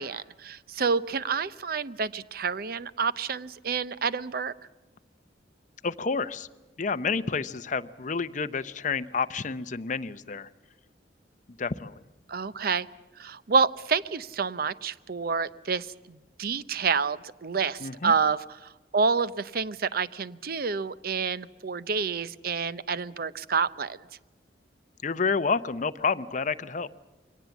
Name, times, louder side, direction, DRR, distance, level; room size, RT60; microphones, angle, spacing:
voice 1, 0.0-4.5 12.3-12.9 13.2-24.0, right 5 dB, 55° right, 17 dB, 0.7 m, -28 dB
voice 2, 5.8-6.5 6.8-10.5 11.6-11.9 17.8-18.1 25.0-26.9, left 5 dB, 45° left, 13 dB, 0.7 m, -29 dB
23.0 x 18.5 x 7.1 m, 1.2 s
head